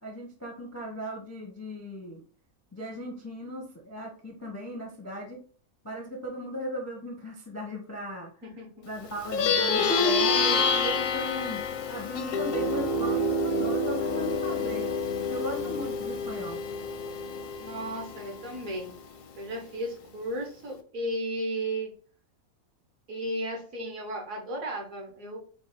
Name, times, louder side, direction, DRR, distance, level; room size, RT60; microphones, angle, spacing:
voice 1, 0.0-2.2 2.7-5.4 5.8-8.3 8.9-14.9 15.3-16.6, right 1 dB, 20° left, 1 dB, 0.4 m, -37 dB
voice 2, 8.4-8.9 17.6-18.9 19.4-21.9 23.1-25.4, right 1 dB, 70° right, 1 dB, 1.5 m, -34 dB
Plucked string instrument, 9.2-18.9, left 3 dB, 60° left, 0.6 m, -28 dB
4.5 x 2.3 x 3.5 m, 0.43 s
omnidirectional pair, 1.5 m